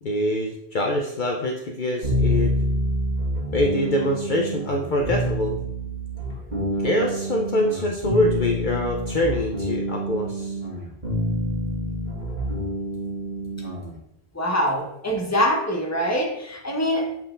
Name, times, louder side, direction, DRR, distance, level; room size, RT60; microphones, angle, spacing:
voice 1, 0.0-2.5 3.5-5.6 6.8-10.6, left 1 dB, 55° left, 1 dB, 0.8 m, -24 dB
sound 1, 2.0-13.9, equal, 45° right, 2.9 m, -27 dB
voice 2, 14.3-17.2, equal, 15° left, 0 dB, 1.2 m, -24 dB
7.6 x 4.5 x 3.8 m, 0.76 s
omnidirectional pair, 1.1 m